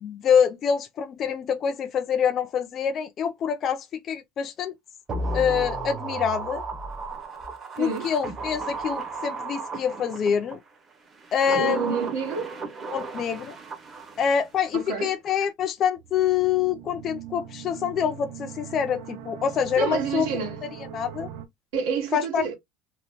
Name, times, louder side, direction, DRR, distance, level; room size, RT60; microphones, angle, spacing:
voice 1, 0.0-4.7 5.3-6.6 7.8-10.6 11.3-12.0 12.9-13.6 14.2-20.3 20.9-21.3 22.1-22.5, left 7 dB, 30° left, 0.3 m, -25 dB
sound 1, 5.1-10.6 11.2-14.4 14.7-14.8, right 3 dB, 20° right, 0.7 m, -34 dB
voice 2, 7.8-8.1 11.4-12.6 14.7-15.2 19.8-20.6 21.7-22.5, right 6 dB, 85° right, 1.2 m, -29 dB
sound 2, 16.0-21.4, right 9 dB, 60° right, 0.6 m, -40 dB
2.8 x 2.1 x 3.4 m
cardioid pair, 165°, 0 cm